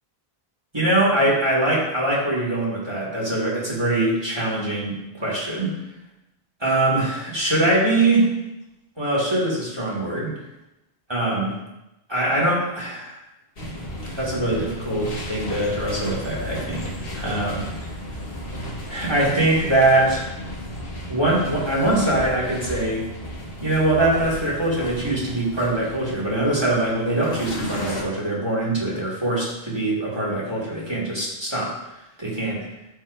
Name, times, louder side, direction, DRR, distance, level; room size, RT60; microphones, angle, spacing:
voice 1, 0.7-5.8 6.6-8.3 9.0-10.3 11.1-11.5 12.1-13.1 14.1-17.6 18.9-20.3 21.1-23.1 23.6-31.7 32.2-32.6, right 1 dB, 25° right, -5 dB, 2.2 m, -22 dB
sound 1, 13.6-28.0, equal, 65° left, 1.7 m, -34 dB
13.5 x 4.9 x 2.7 m, 0.94 s
omnidirectional pair, 1.0 m